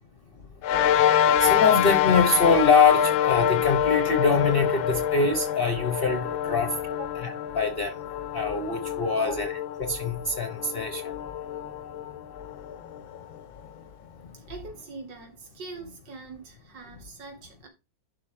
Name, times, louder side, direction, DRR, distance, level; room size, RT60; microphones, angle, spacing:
sound 1, 0.6-13.4, left 10 dB, 90° left, 1.5 m, -26 dB
voice 1, 1.4-6.7 7.2-7.9 8.3-9.5 9.8-11.0, left 4 dB, 35° left, 1.0 m, -23 dB
voice 2, 9.1-9.5 14.3-17.7, right 3 dB, 65° right, 3.1 m, -42 dB
11.5 x 4.3 x 5.0 m
omnidirectional pair, 2.1 m